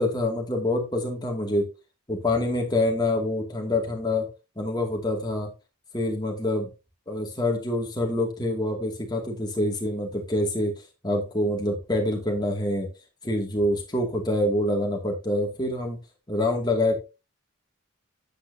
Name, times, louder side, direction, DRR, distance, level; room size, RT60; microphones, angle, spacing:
voice 1, 0.0-1.7 2.1-4.3 4.6-5.5 5.9-6.7 7.1-10.8 11.0-12.9 13.2-16.0 16.3-17.0, left 1 dB, 20° left, 1 dB, 2.4 m, -26 dB
10.0 x 8.6 x 2.8 m, 0.28 s
head